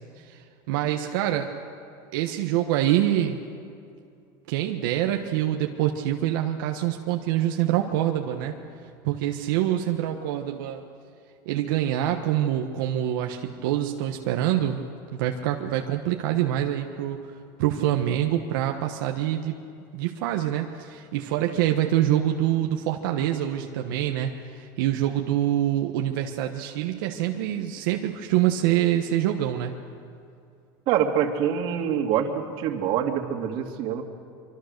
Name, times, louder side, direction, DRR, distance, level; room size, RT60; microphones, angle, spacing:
voice 1, 0.2-1.5 2.1-3.4 4.5-8.6 9.0-10.8 11.5-14.8 15.1-17.2 17.6-19.6 19.9-29.7, right 12 dB, 80° right, 3 dB, 1.3 m, -25 dB
voice 2, 30.9-34.0, right 9 dB, 55° right, 4 dB, 2.3 m, -25 dB
25.0 x 24.5 x 6.7 m, 2.5 s
supercardioid pair, 150°, 11 cm